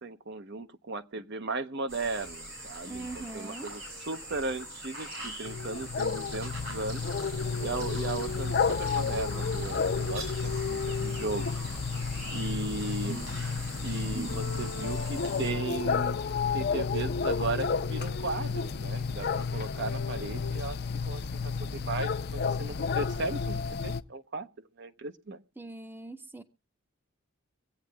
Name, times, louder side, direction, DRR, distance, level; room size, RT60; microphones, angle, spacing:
voice 1, 0.0-3.8 4.1-7.0 7.6-11.5 12.3-13.2 13.8-16.2 16.5-24.5 24.8-25.4, right 3 dB, 55° right, 0.7 m, -36 dB
sound 1, 1.9-15.5, right 1 dB, 70° right, 6.7 m, -42 dB
voice 2, 2.9-3.7 25.6-26.4, right 2 dB, 10° right, 0.6 m, -42 dB
sound 2, 5.4-24.0, left 5 dB, 50° left, 0.5 m, -31 dB
sound 3, 14.3-20.6, left 4 dB, 80° left, 0.7 m, -43 dB
24.5 x 8.5 x 2.3 m
head